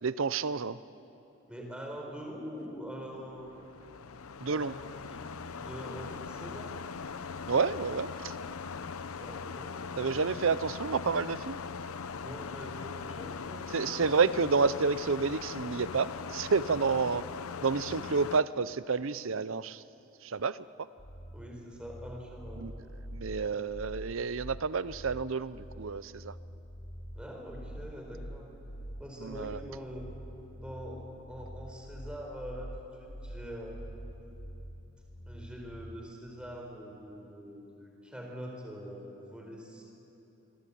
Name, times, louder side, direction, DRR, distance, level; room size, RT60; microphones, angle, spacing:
voice 1, 0.0-0.8 4.4-4.7 7.5-8.3 10.0-11.6 13.7-17.2 17.6-19.8 20.2-20.6 22.6-22.7 23.1-26.3 29.2-29.6, right 5 dB, 65° right, 16 dB, 0.6 m, -29 dB
voice 2, 1.5-3.5 4.5-6.7 9.2-10.4 12.1-14.3 16.7-17.0 21.3-22.6 27.1-28.5 29.0-30.1 30.5-33.8 35.2-39.8, equal, 5° right, 0 dB, 4.4 m, -44 dB
sound 1, 3.3-18.4, left 5 dB, 85° left, 0.7 m, -40 dB
sound 2, 21.0-36.0, equal, 65° left, 3.6 m, -45 dB
25.0 x 24.0 x 8.6 m, 3.0 s
head